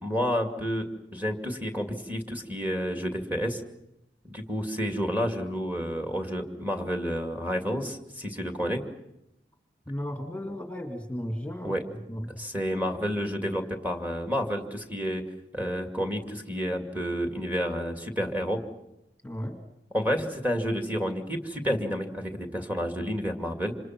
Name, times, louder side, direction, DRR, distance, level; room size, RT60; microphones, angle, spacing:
voice 1, 0.0-3.6 4.2-8.8 11.6-11.8 12.4-15.2 15.5-18.6 19.9-23.8, equal, 10° right, 5 dB, 2.5 m, -30 dB
voice 2, 9.9-11.7 12.1-12.3 19.2-19.6, equal, 10° left, 4 dB, 2.2 m, -34 dB
28.5 x 27.0 x 6.1 m, 0.85 s
head